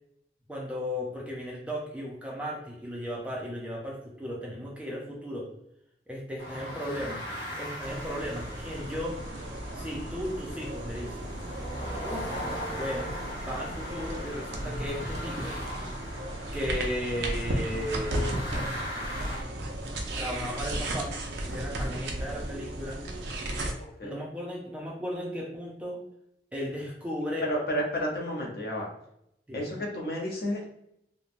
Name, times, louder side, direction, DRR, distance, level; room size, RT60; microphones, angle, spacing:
voice 1, 0.5-5.5 6.1-7.2 7.6-9.2 9.7-11.3 12.0-12.4 12.7-13.1 13.4-15.6 16.5-18.9 20.2-21.1 21.4-23.0 24.0-26.0 26.5-27.5 29.5-29.7, equal, 5° right, -3 dB, 0.4 m, -35 dB
sound 1, 6.4-19.4, equal, 30° left, 0.9 m, -39 dB
sound 2, 7.8-23.7, right 1 dB, 80° right, 0.5 m, -35 dB
voice 2, 23.8-24.2 27.4-28.9 29.5-30.7, equal, 60° left, -1 dB, 0.7 m, -31 dB
3.1 x 2.1 x 2.5 m, 0.77 s
head